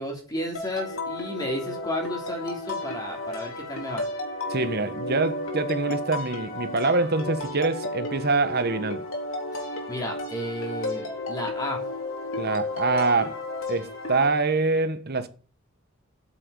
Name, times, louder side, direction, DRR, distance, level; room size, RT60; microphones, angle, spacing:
voice 1, 0.0-4.1 9.5-11.8, equal, 20° left, 3.0 m, -33 dB
sound 1, 0.5-14.3, left 2 dB, 75° left, 3.5 m, -33 dB
voice 2, 4.5-9.0 12.4-15.3, right 3 dB, 50° right, 1.3 m, -25 dB
8.7 x 7.7 x 9.1 m
head